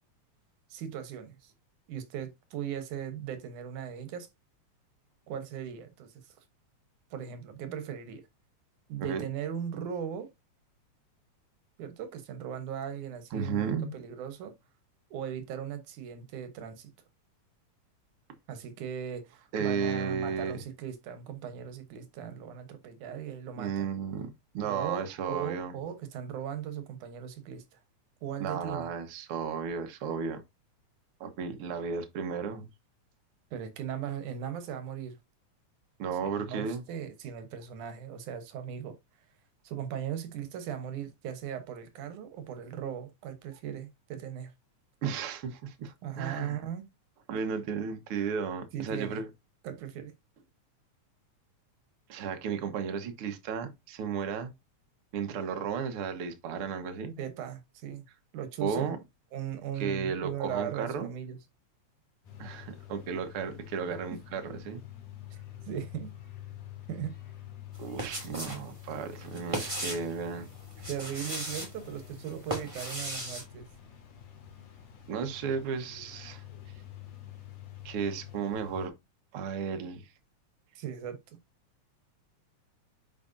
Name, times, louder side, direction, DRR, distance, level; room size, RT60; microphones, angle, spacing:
voice 1, 0.7-1.5 1.9-4.3 5.3-6.4 7.1-8.2 8.9-10.3 11.8-14.6 15.1-16.9 18.5-23.9 24.6-27.8 28.2-28.9 33.5-35.2 36.2-39.0 39.6-44.5 46.0-46.9 48.7-49.2 49.6-50.1 57.2-58.1 58.3-58.9 59.3-61.4 64.1-64.2 65.3-65.4 65.7-66.1 66.9-67.2 70.9-73.7 80.8-81.2, right 9 dB, 85° right, 2.7 m, -38 dB
voice 2, 13.3-13.9 19.5-20.6 23.6-25.8 28.4-30.4 31.2-32.7 36.0-36.8 45.0-46.6 47.3-49.3 52.1-54.5 55.1-57.1 58.6-59.0 59.8-61.1 62.4-64.8 67.8-70.5 75.1-76.4 77.8-78.9 79.3-80.1, right 6 dB, 55° right, 2.0 m, -34 dB
sound 1, 62.2-78.9, left 11 dB, 85° left, 3.6 m, -47 dB
sound 2, 67.7-68.6 68.9-70.1 70.7-71.7 72.2-73.4, right 1 dB, 10° right, 2.5 m, -36 dB
10.5 x 5.1 x 2.7 m
omnidirectional pair, 3.4 m